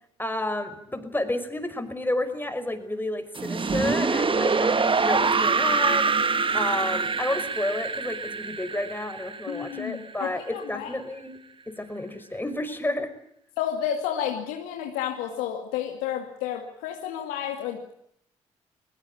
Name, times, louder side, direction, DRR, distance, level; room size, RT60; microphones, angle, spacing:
voice 1, 0.2-6.1 6.5-11.4 11.7-13.1, left 1 dB, 15° left, 9 dB, 5.6 m, -31 dB
sound 1, 3.4-10.3, right 4 dB, 35° right, 1.7 m, -25 dB
voice 2, 9.5-10.9 13.6-17.9, left 9 dB, 85° left, 2 dB, 2.3 m, -31 dB
22.0 x 20.0 x 8.8 m, 0.73 s
hypercardioid pair, 45°, 15 cm